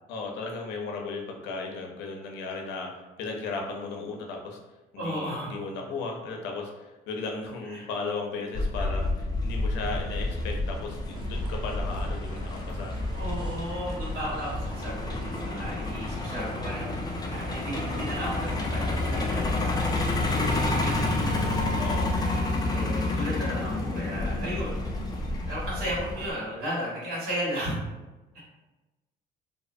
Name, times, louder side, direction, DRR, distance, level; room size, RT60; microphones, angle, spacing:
voice 1, 0.1-4.6 4.9-13.0 21.8-22.1, left 3 dB, 90° left, 1 dB, 0.5 m, -35 dB
voice 2, 5.0-5.6 7.7-7.9 8.8-9.0 13.1-20.1 20.7-24.8 25.5-27.8 28.3-28.4, equal, 60° right, -8 dB, 1.5 m, -35 dB
Truck, 8.5-26.3, left 2 dB, 25° left, 0.4 m, -29 dB
sound 1, 11.1-19.3, right 1 dB, 30° right, 0.5 m, -41 dB
2.6 x 2.1 x 2.6 m, 1.1 s
cardioid pair, 110°, 17 cm